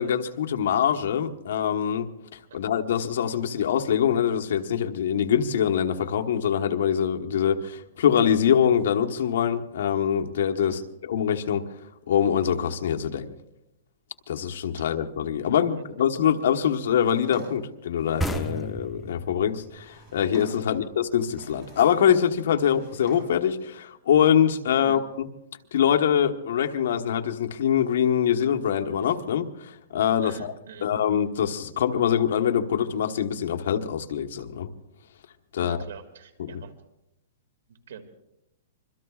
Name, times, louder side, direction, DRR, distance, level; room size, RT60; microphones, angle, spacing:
voice 1, 0.0-2.1 2.5-11.6 12.1-13.3 14.3-25.3 25.7-30.5 30.8-34.7 35.5-35.8 36.4-36.6, left 8 dB, 65° left, 4 dB, 1.2 m, -24 dB
Drawer open or close, 16.9-18.7 19.5-20.8 21.2-22.1 22.4-23.5, equal, 10° right, 7.1 m, -48 dB
sound 1, 18.2-21.6, equal, 5° left, 0.7 m, -34 dB
voice 2, 30.2-30.9 35.6-36.7 37.9-38.0, right 7 dB, 80° right, 7 dB, 2.2 m, -43 dB
25.5 x 22.5 x 2.4 m, 0.86 s
hypercardioid pair, 165°, 0 cm